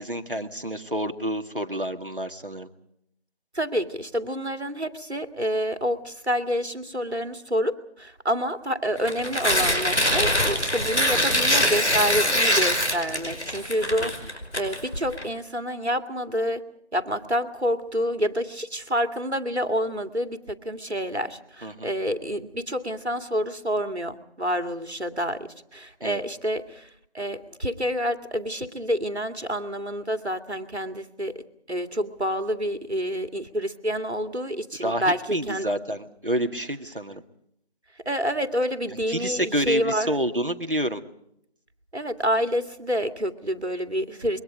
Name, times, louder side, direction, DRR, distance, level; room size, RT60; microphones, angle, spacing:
voice 1, 0.0-2.7 14.0-14.1 21.6-21.9 26.0-26.2 34.8-35.0 35.3-37.2 39.1-41.0, equal, 55° right, 6 dB, 1.9 m, -28 dB
voice 2, 3.5-16.6 16.9-35.7 38.1-40.1 41.9-44.4, equal, 80° right, 8 dB, 2.3 m, -28 dB
Tearing, 9.0-15.2, equal, 85° left, 5.3 m, -23 dB
26.5 x 23.0 x 5.1 m, 0.74 s
figure-of-eight pair, 180°, 33 cm